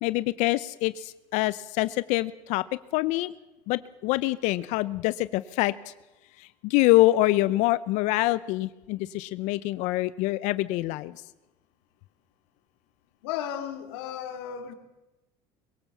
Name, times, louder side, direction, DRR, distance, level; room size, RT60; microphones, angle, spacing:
voice 1, 0.0-2.6 2.9-3.3 3.7-5.7 6.6-11.1, left 18 dB, 65° left, 0.6 m, -25 dB
voice 2, 13.2-14.7, left 9 dB, 85° left, 2.5 m, -34 dB
22.0 x 17.0 x 7.2 m
supercardioid pair, 105°, 13 cm